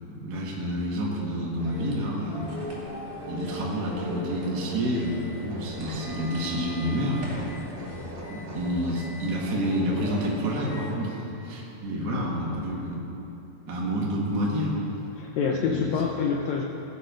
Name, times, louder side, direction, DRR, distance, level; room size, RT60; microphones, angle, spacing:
voice 1, 0.1-2.5 3.3-7.5 8.3-11.2 11.4-13.0 13.7-14.8 15.5-15.9, equal, 40° right, -4 dB, 1.5 m, -29 dB
sound 1, 1.6-10.9, equal, 20° right, 1.8 m, -38 dB
voice 2, 15.2-16.6, left 6 dB, 90° left, 1 dB, 1.6 m, -27 dB
18.0 x 7.8 x 5.1 m, 3.0 s
omnidirectional pair, 4.2 m